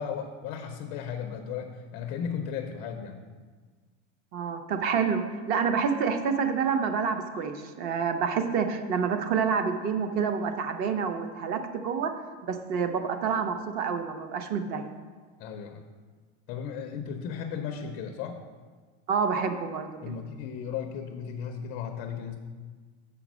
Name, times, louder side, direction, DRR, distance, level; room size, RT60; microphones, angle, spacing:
voice 1, 0.0-3.2 15.4-15.8 16.5-18.4 20.0-22.4, left 7 dB, 25° left, 5 dB, 0.4 m, -35 dB
voice 2, 4.3-12.1 12.5-14.9 19.1-20.1, right 6 dB, 30° right, 8 dB, 0.5 m, -28 dB
6.7 x 5.1 x 6.0 m, 1.5 s
supercardioid pair, 160°, 34 cm